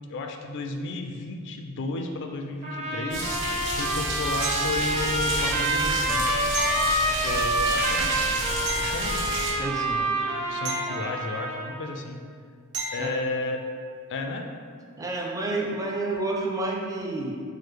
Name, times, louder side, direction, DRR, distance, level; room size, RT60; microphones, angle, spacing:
voice 1, 0.1-6.4 7.1-8.1 8.8-9.2 10.5-12.2 12.9-13.7 14.1-14.5, left 3 dB, 55° left, 4 dB, 0.3 m, -33 dB
Trumpet, 2.6-11.8, right 1 dB, 30° right, 0.8 m, -27 dB
sound 1, 3.1-9.5, right 1 dB, 60° right, 1.1 m, -31 dB
sound 2, 4.4-5.2 6.5-7.6 8.7-9.7 10.6-11.7 12.7-13.4 16.1-16.2, right 3 dB, 80° right, 0.7 m, -35 dB
voice 2, 9.6-10.1 13.0-13.1 15.0-17.4, right 2 dB, 15° right, -1 dB, 0.4 m, -29 dB
4.7 x 2.0 x 4.6 m, 2.2 s
head